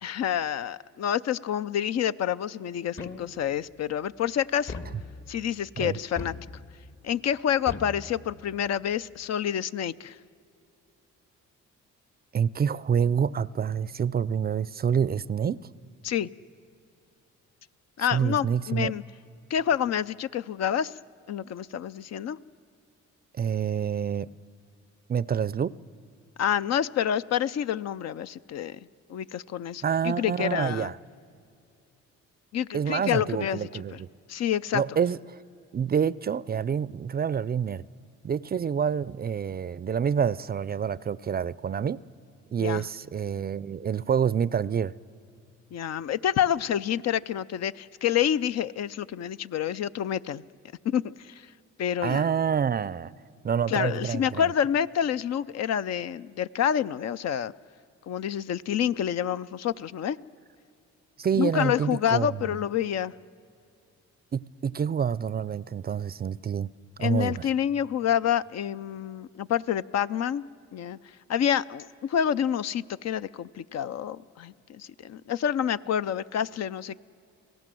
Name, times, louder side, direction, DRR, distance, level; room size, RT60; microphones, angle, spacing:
voice 1, 0.0-4.7 5.3-6.3 7.0-10.2 16.0-16.3 18.0-19.0 19.5-20.9 21.3-22.4 26.4-30.9 32.5-34.0 34.3-34.8 42.6-42.8 45.7-50.4 50.8-51.4 51.8-52.2 53.7-57.5 58.1-60.2 61.4-63.1 67.0-70.5 70.7-71.0 71.3-77.0, left 9 dB, 60° left, 0.6 m, -28 dB
sound 1, 3.0-3.7 4.7-5.5 6.2-7.0 7.7-8.7, left 3 dB, 45° left, 1.6 m, -40 dB
voice 2, 12.3-15.6 18.1-18.9 23.4-24.3 25.1-25.8 29.8-31.0 32.7-34.1 34.7-35.4 35.7-37.8 38.2-42.0 42.5-44.9 52.0-53.1 53.4-54.5 61.2-62.6 64.3-66.7 67.0-67.5, right 7 dB, 30° right, 0.5 m, -27 dB
27.0 x 17.5 x 7.7 m
cardioid pair, 90°, 30 cm